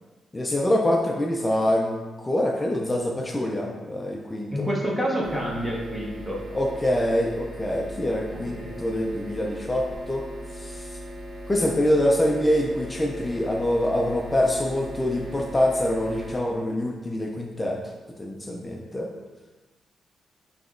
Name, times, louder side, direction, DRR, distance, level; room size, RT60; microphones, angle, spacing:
voice 1, 0.3-4.7 6.5-10.2 10.6-10.8 11.5-17.8 18.2-19.1, left 1 dB, 15° left, 0 dB, 0.3 m, -25 dB
voice 2, 4.5-6.4 8.3-8.8, equal, 5° right, -3 dB, 0.7 m, -28 dB
sound 1, 5.2-16.4, equal, 70° right, 1.1 m, -39 dB
6.1 x 2.8 x 2.5 m, 1.2 s
wide cardioid pair, 145°, 0 cm